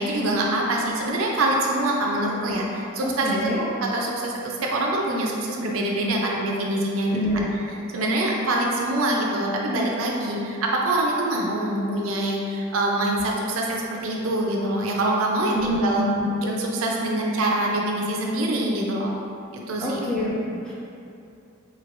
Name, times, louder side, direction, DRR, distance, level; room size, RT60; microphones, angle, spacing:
voice 1, 0.0-7.2 7.9-16.1 16.4-19.1 19.5-20.0, right 1 dB, 75° right, -1 dB, 0.5 m, -25 dB
voice 2, 3.0-3.6 7.1-7.5 15.5-16.3 19.8-20.7, equal, 5° left, -9 dB, 0.6 m, -26 dB
3.6 x 3.1 x 2.5 m, 2.6 s
head